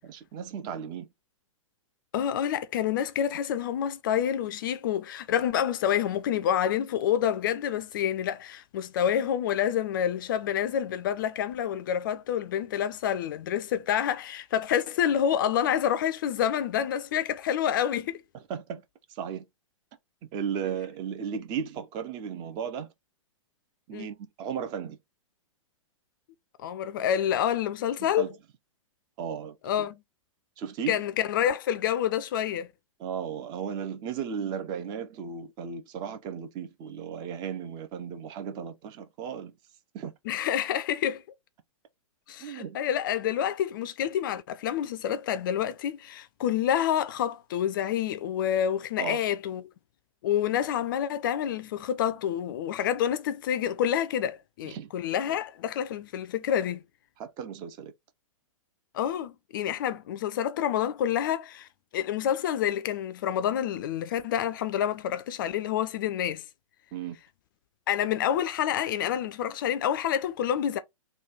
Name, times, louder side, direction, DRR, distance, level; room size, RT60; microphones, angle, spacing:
voice 1, 0.0-1.1 18.3-18.8 19.1-19.4 20.3-22.9 23.9-25.0 28.0-28.4 29.2-29.6 30.6-31.0 33.0-39.5 39.9-40.1 42.4-42.8 49.0-49.2 54.6-54.9 57.2-57.9 66.9-67.2, right 7 dB, 25° right, 0.5 m, -35 dB
voice 2, 2.1-18.2 23.9-24.1 26.6-28.2 29.6-30.0 30.9-32.7 40.3-41.2 42.3-49.7 50.2-56.8 58.9-66.4 67.9-70.8, left 10 dB, 40° left, 0.4 m, -28 dB
3.1 x 2.2 x 3.9 m
figure-of-eight pair, 110°, 17 cm